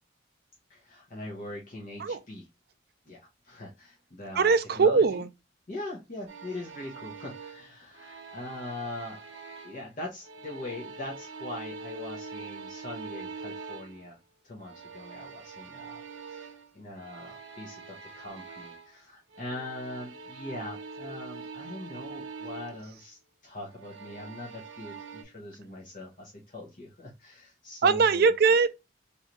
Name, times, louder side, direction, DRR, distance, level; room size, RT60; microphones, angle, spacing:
voice 1, 0.7-2.5 3.1-5.2 5.7-9.2 9.6-14.2 14.4-28.3, left 2 dB, 45° left, 0.9 m, -42 dB
voice 2, 4.4-5.3 27.8-28.7, right 5 dB, 55° right, 0.4 m, -21 dB
sound 1, 6.3-9.9 10.2-14.1 14.6-19.0 19.3-22.9 23.7-25.2, right 4 dB, 80° right, 0.7 m, -44 dB
3.2 x 2.7 x 2.9 m
head